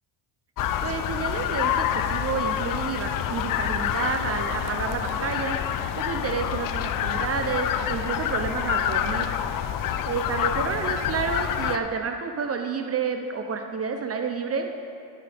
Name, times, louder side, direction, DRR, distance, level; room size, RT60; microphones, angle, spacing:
sound 1, 0.6-11.8, left 9 dB, 50° left, 0.6 m, -27 dB
voice 1, 0.8-5.6 6.0-9.3 10.0-14.8, right 5 dB, 35° right, 5 dB, 0.6 m, -30 dB
13.0 x 9.9 x 3.4 m, 2.5 s
cardioid pair, 110°, 43 cm